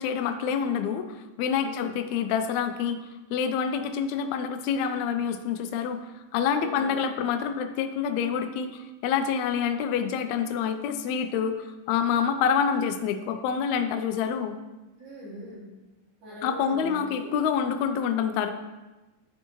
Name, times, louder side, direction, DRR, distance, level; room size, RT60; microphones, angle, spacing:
voice 1, 0.0-3.0 3.3-6.1 6.3-14.5 16.4-18.5, left 7 dB, 80° left, 8 dB, 1.7 m, -27 dB
voice 2, 1.6-1.9 6.5-6.9 15.0-15.7 16.2-17.3, equal, 65° right, -8 dB, 3.4 m, -41 dB
10.5 x 3.6 x 3.0 m, 1.1 s
omnidirectional pair, 3.7 m